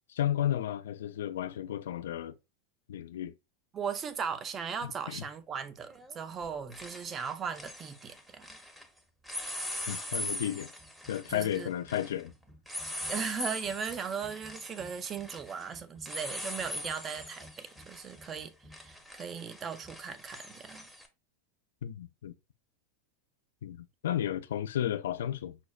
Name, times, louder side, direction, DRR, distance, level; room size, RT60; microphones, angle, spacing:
voice 1, 0.1-2.3 2.9-3.3 5.1-5.2 9.9-10.7 11.1-12.3 21.8-22.3 23.6-25.6, left 11 dB, 75° left, 0.3 m, -33 dB
voice 2, 3.7-8.5 11.3-11.7 13.1-20.8, right 6 dB, 30° right, 0.5 m, -38 dB
sound 1, 4.0-4.1 5.9-6.2 6.4-8.9 9.2-21.1, left 1 dB, 5° right, 0.8 m, -42 dB
5.8 x 2.1 x 2.3 m
hypercardioid pair, 100°, 0 cm